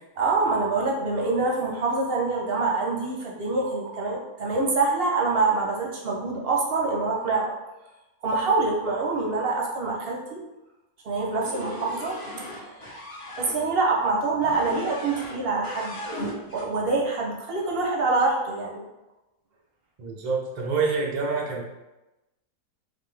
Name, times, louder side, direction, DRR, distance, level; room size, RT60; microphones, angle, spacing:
voice 1, 0.2-7.5 8.2-10.4 11.0-12.9 13.4-16.0 16.5-18.9, right 3 dB, 50° right, -1 dB, 0.7 m, -25 dB
sound 1, 11.4-13.6 14.4-15.4 15.6-16.7, equal, 30° left, 0.7 m, -37 dB
voice 2, 20.0-21.6, right 4 dB, 75° right, -2 dB, 0.4 m, -27 dB
4.1 x 2.9 x 3.3 m, 1.0 s
omnidirectional pair, 1.7 m